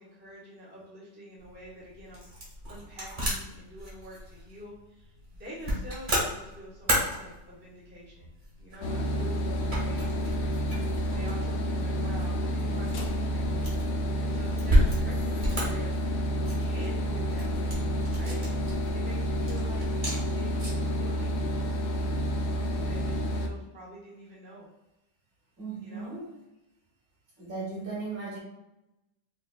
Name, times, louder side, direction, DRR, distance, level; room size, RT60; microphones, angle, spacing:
voice 1, 0.0-10.2 11.1-13.7 14.2-15.9 16.5-19.9 20.3-24.7 25.8-26.1, equal, 10° right, -5 dB, 0.5 m, -47 dB
sound 1, 1.4-20.9, equal, 30° right, 1.2 m, -33 dB
sound 2, 8.8-23.5, equal, 70° left, 1.0 m, -29 dB
voice 2, 25.6-26.4 27.4-28.4, right 3 dB, 55° right, -4 dB, 1.6 m, -37 dB
5.0 x 2.4 x 2.3 m, 0.94 s
omnidirectional pair, 1.9 m